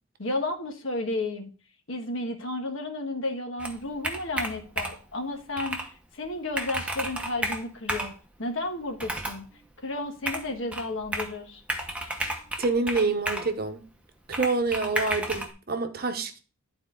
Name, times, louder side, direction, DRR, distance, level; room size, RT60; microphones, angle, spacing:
voice 1, 0.2-1.5 1.9-5.8 6.1-8.1 8.4-9.4 9.8-11.6, left 2 dB, 65° left, 1.4 m, -32 dB
Computer keyboard, 3.6-5.1 5.6-5.9 6.2-6.3 6.5-8.2 9.0-9.5 10.3-11.4 11.7-13.5 14.3-15.5, right 1 dB, 5° right, 0.9 m, -32 dB
voice 2, 12.6-13.8 14.3-16.4, right 3 dB, 45° right, 0.9 m, -27 dB
11.5 x 4.3 x 3.8 m
head